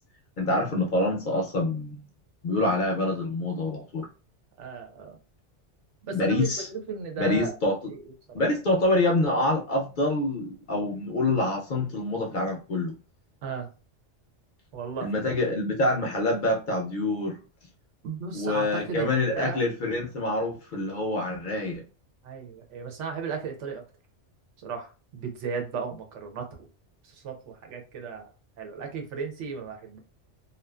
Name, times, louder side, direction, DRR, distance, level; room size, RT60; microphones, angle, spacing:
voice 1, 0.4-2.0 2.4-4.1 6.1-6.7 7.2-7.7 8.3-12.9 15.0-17.4 18.3-21.8, left 2 dB, 55° left, 0 dB, 0.6 m, -26 dB
voice 2, 4.6-5.2 6.0-7.6 7.9-8.4 13.4-13.7 14.7-15.1 18.0-19.6 22.2-23.8 24.6-26.7 27.0-30.0, right 5 dB, 85° right, 4 dB, 1.0 m, -35 dB
2.5 x 2.3 x 2.3 m, 0.34 s
omnidirectional pair, 1.2 m